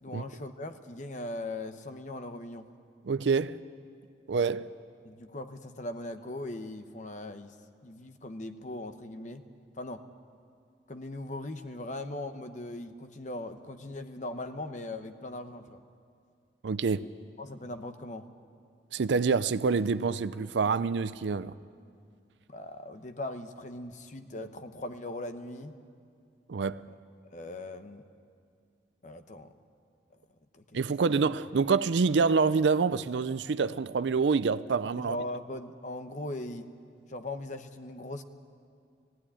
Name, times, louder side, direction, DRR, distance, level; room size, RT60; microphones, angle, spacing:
voice 1, 0.0-2.7 5.0-7.5 7.8-9.4 9.8-10.0 10.9-15.8 17.4-18.3 22.5-25.8 27.3-28.0 29.0-29.5 30.5-30.6 31.1-31.2 34.9-36.7 37.1-38.2, left 2 dB, 45° left, 0.9 m, -39 dB
voice 2, 3.1-3.6 4.3-4.7 16.6-17.1 18.9-21.5 26.5-26.9 30.7-35.2, right 5 dB, 85° right, 0.5 m, -27 dB
18.5 x 15.5 x 10.0 m
head